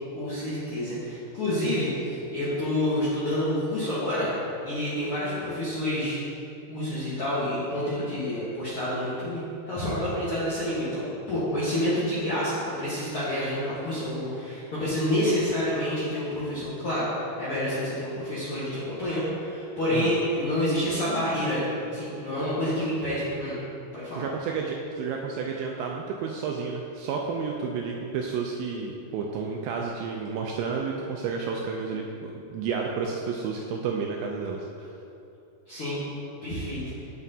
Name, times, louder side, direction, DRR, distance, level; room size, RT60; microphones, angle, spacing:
voice 1, 0.1-4.3 4.6-6.2 6.7-17.1 17.4-21.7 21.9-23.6 23.9-24.2 35.7-36.0 36.4-36.8, left 1 dB, 80° left, -10 dB, 1.2 m, -28 dB
voice 2, 24.1-34.9, right 5 dB, 85° right, 0 dB, 2.1 m, -31 dB
8.8 x 7.3 x 2.7 m, 2.8 s
omnidirectional pair, 4.7 m